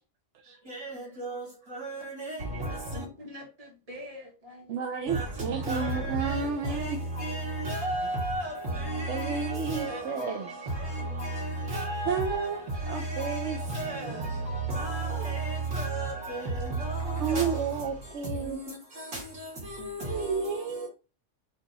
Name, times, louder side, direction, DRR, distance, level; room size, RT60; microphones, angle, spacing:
voice 1, 0.7-1.4 1.7-3.0 5.1-10.3 10.7-12.5 12.8-17.6 18.4-18.7 19.1-19.5 19.8-20.4, right 2 dB, 90° right, 2.6 m, -33 dB
voice 2, 2.9-4.8 10.1-10.4, equal, 30° right, 1.5 m, -44 dB
voice 3, 4.7-7.0 9.1-10.6 12.1-13.6 17.2-18.6 20.1-20.9, right 5 dB, 70° right, 0.9 m, -31 dB
4.5 x 2.9 x 3.9 m
omnidirectional pair, 1.3 m